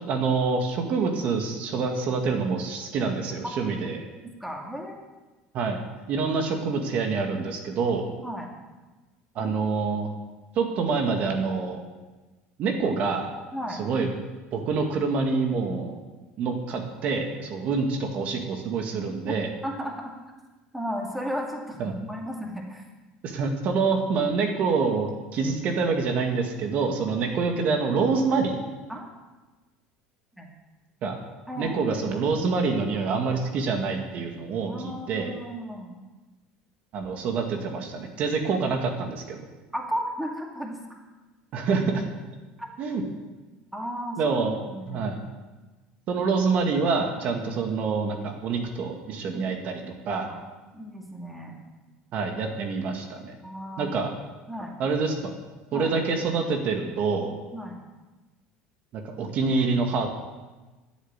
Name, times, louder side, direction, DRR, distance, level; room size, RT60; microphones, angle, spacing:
voice 1, 0.1-4.0 5.5-5.8 6.1-8.1 9.4-10.1 10.6-11.8 12.6-13.3 13.8-14.1 14.5-16.0 16.4-19.5 21.8-21.9 23.2-28.6 31.0-31.2 31.6-35.3 36.9-39.4 41.5-42.0 42.8-43.0 44.2-44.5 44.9-45.2 46.1-50.3 52.1-53.4 53.8-54.1 54.8-55.4 55.7-57.3 58.9-60.1, right 4 dB, 50° right, 3 dB, 2.0 m, -26 dB
voice 2, 4.4-5.0 8.2-8.5 9.4-9.5 13.5-13.8 19.6-20.1 20.7-22.9 28.9-29.1 30.4-30.5 31.5-31.8 34.6-36.0 39.7-40.8 42.6-42.7 43.7-45.0 49.3-49.4 50.3-50.4 50.7-51.6 53.4-53.9 54.5-54.7 55.7-55.9 57.5-57.8, equal, 5° right, 0 dB, 2.2 m, -34 dB
12.5 x 7.3 x 9.6 m, 1.2 s
cardioid pair, 130°, 3 cm